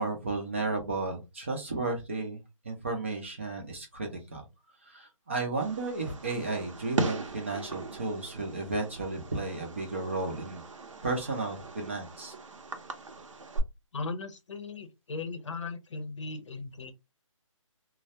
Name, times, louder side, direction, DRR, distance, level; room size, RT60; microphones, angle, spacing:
voice 1, 0.0-2.4 2.6-4.4 4.8-10.6 11.0-12.3, right 3 dB, 20° right, 0.4 m, -33 dB
Fireworks, 5.6-13.6, right 3 dB, 65° right, 0.7 m, -38 dB
voice 2, 13.9-16.9, left 3 dB, 60° left, 0.7 m, -37 dB
2.2 x 2.0 x 2.7 m
hypercardioid pair, 170°, 17 cm